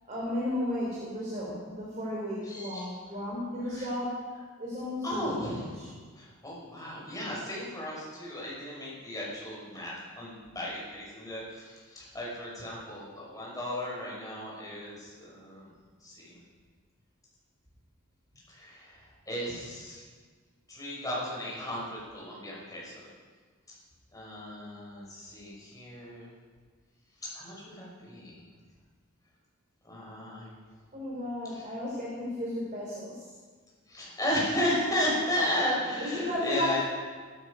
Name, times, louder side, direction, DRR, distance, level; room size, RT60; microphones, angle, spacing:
voice 1, 0.0-4.1 4.6-5.4 30.9-33.2 36.0-36.8, left 1 dB, 35° right, -5 dB, 3.7 m, -34 dB
voice 2, 2.4-3.0 3.6-3.9 5.0-15.7 16.0-16.4 18.5-20.0 20.7-23.1 24.1-26.3 27.2-28.4 29.8-30.7 31.5-31.7 33.9-36.8, left 1 dB, 15° left, -5 dB, 5.6 m, -35 dB
17.0 x 13.0 x 5.2 m, 1.5 s
head